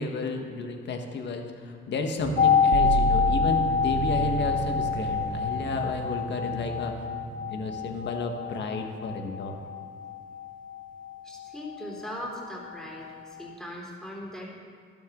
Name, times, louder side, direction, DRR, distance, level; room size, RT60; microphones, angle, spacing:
voice 1, 0.0-6.9 7.5-9.6, left 3 dB, 60° left, 4 dB, 1.5 m, -32 dB
sound 1, 2.2-8.5, right 4 dB, 60° right, 0.7 m, -33 dB
sound 2, 2.4-12.1 12.4-12.5, left 6 dB, 40° left, 0.6 m, -27 dB
voice 2, 11.2-14.4, equal, 5° left, -3 dB, 3.3 m, -39 dB
12.5 x 12.0 x 3.8 m, 2.1 s
cardioid pair, 90°, 20 cm